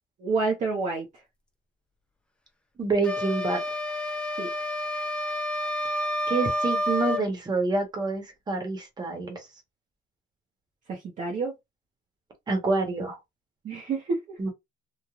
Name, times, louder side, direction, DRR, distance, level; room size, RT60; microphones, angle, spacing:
voice 1, 0.2-1.1 4.4-4.5 10.9-11.5 13.6-14.2, right 4 dB, 40° right, 0.7 m, -28 dB
voice 2, 2.8-3.6 6.3-9.4 12.5-13.2 14.4-14.5, right 3 dB, 20° right, 1.0 m, -27 dB
sound 1, 3.0-7.3, left 1 dB, 5° left, 0.3 m, -29 dB
3.1 x 2.3 x 2.3 m
cardioid pair, 155°, 20 cm